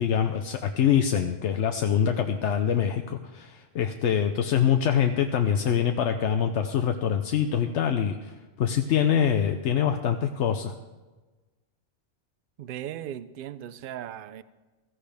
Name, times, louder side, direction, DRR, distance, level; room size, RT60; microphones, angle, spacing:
voice 1, 0.0-8.3 8.6-10.7, left 8 dB, 75° left, 6 dB, 0.9 m, -24 dB
voice 2, 12.6-14.4, right 11 dB, 60° right, 15 dB, 0.6 m, -37 dB
15.5 x 14.5 x 3.4 m, 1.2 s
omnidirectional pair, 1.2 m